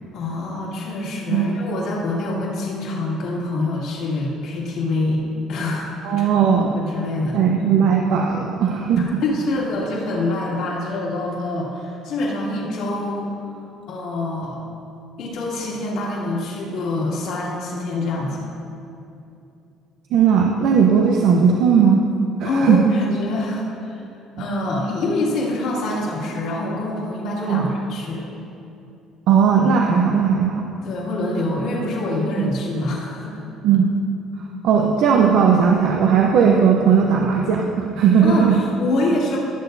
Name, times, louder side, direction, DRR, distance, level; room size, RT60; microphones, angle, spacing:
voice 1, 0.1-5.2 5.5-6.4 6.7-7.5 9.0-13.4 13.9-14.6 15.2-18.5 22.4-24.0 24.4-28.2 30.8-33.3 38.2-39.4, left 2 dB, 70° left, -5 dB, 2.3 m, -25 dB
voice 2, 6.0-6.8 7.3-9.2 20.1-22.1 22.4-22.9 27.5-27.7 29.3-30.6 32.4-32.5 33.6-33.9 34.6-38.6, right 6 dB, 70° right, 0 dB, 0.6 m, -17 dB
16.5 x 6.8 x 2.6 m, 2.7 s
cardioid pair, 100°, 0 cm